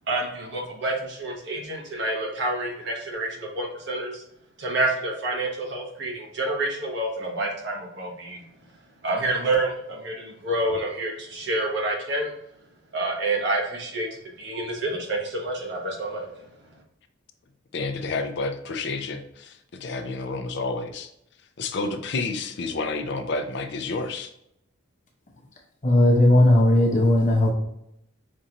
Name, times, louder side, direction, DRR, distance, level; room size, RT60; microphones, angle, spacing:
voice 1, 0.1-4.2 4.6-8.4 9.0-12.3 12.9-14.1 14.4-16.3, right 2 dB, 55° right, -2 dB, 1.1 m, -28 dB
voice 2, 17.7-21.1 21.6-24.3, left 3 dB, 55° left, 7 dB, 0.4 m, -30 dB
voice 3, 25.8-27.5, left 1 dB, 35° left, 1 dB, 0.8 m, -17 dB
5.3 x 2.5 x 2.9 m, 0.77 s
head